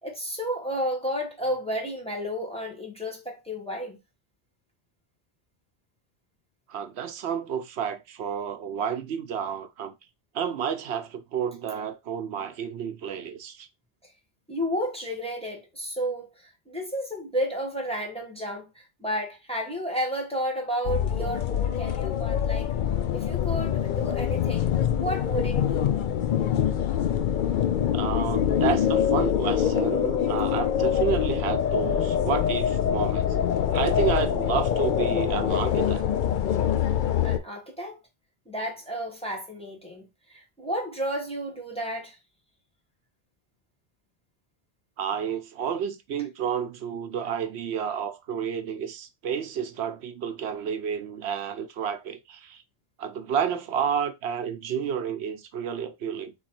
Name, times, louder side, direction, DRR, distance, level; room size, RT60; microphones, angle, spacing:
voice 1, 0.0-4.0 14.5-22.8 23.1-24.7 25.0-25.8 37.2-38.0 38.5-42.2, equal, 5° left, 1.1 m, -32 dB
voice 2, 6.7-10.0 10.3-13.7 27.9-33.3 33.7-36.0 45.0-52.6 53.0-56.3, right 7 dB, 75° right, 0.9 m, -30 dB
sound 1, 20.8-37.4, left 9 dB, 60° left, 0.6 m, -25 dB
4.0 x 3.0 x 4.3 m
omnidirectional pair, 1.1 m